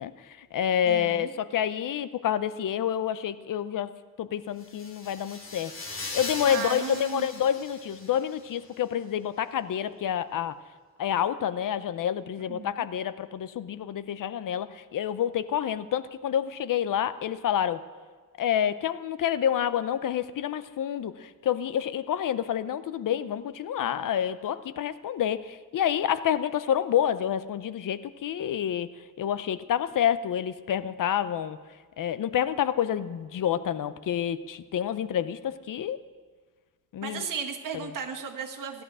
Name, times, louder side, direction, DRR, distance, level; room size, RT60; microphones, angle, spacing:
voice 1, 0.0-3.9 4.2-10.6 11.0-17.8 18.4-28.9 29.2-31.6 32.0-36.0 36.9-37.2, left 9 dB, 65° left, 13 dB, 0.6 m, -28 dB
voice 2, 0.8-1.3 6.4-7.3 12.5-12.9 37.0-38.8, right 6 dB, 65° right, 2 dB, 1.7 m, -35 dB
sound 1, 4.6-8.5, left 3 dB, 35° left, 2.6 m, -39 dB
17.0 x 11.5 x 6.1 m, 1.5 s
wide cardioid pair, 160°, 35 cm